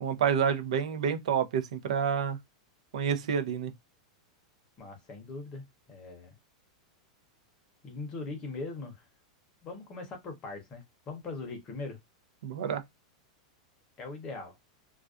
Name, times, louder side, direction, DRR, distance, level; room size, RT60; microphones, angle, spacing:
voice 1, 0.0-2.4 2.9-3.7 12.4-12.8, right 7 dB, 90° right, 0.5 m, -28 dB
voice 2, 4.8-6.4 7.8-9.1 9.6-12.0 14.0-14.6, left 3 dB, 25° left, 0.7 m, -40 dB
2.4 x 2.2 x 2.4 m
supercardioid pair, 165°, 4 cm